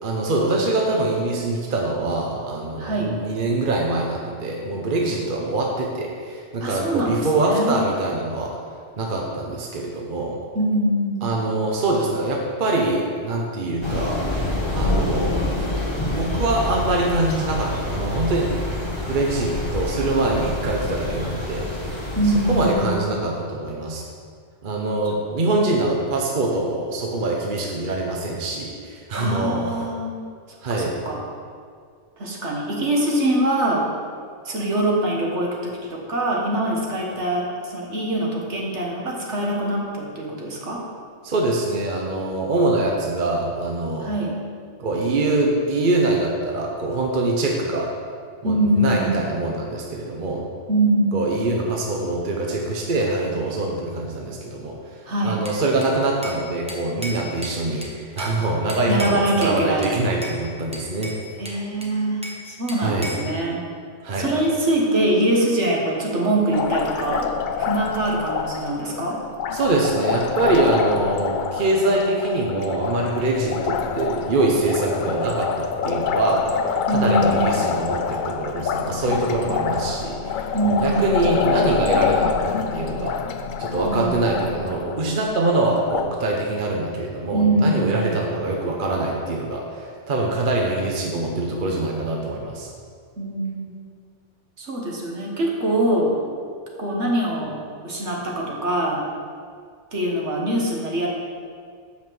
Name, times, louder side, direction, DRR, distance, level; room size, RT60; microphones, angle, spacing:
voice 1, 0.0-8.5 9.0-10.4 11.2-14.2 14.7-15.4 16.1-18.5 19.1-21.7 22.5-24.0 24.6-29.7 30.6-30.9 41.2-44.1 44.8-47.9 48.4-50.4 51.1-54.8 55.2-61.1 62.8-63.1 64.0-64.3 69.5-83.2 83.6-92.7, right 2 dB, 45° right, -1 dB, 1.0 m, -24 dB
voice 2, 2.8-3.2 6.6-7.8 10.5-11.3 22.1-23.0 29.1-30.1 30.7-31.2 32.2-33.8 34.4-40.8 44.0-44.4 48.4-49.2 50.7-51.1 55.1-55.4 58.9-59.9 61.4-62.2 62.5-63.6 64.2-67.3 67.6-69.2 76.9-77.7 80.5-81.2 83.8-84.2 87.3-88.2 93.2-93.8 94.6-96.1 96.8-97.5 97.8-99.0 99.9-101.1, right 1 dB, 65° right, -2 dB, 1.7 m, -23 dB
Thunder / Rain, 13.8-22.7, left 1 dB, 20° left, 1.3 m, -27 dB
Bell / Glass, 55.5-56.4 56.7-58.4 58.7-59.6 59.8-60.4 60.7-62.4 62.7-63.3, equal, 5° right, 1.0 m, -35 dB
Liquid, 66.5-86.0, left 6 dB, 65° left, 0.5 m, -26 dB
7.3 x 5.8 x 6.1 m, 2.1 s
omnidirectional pair, 1.3 m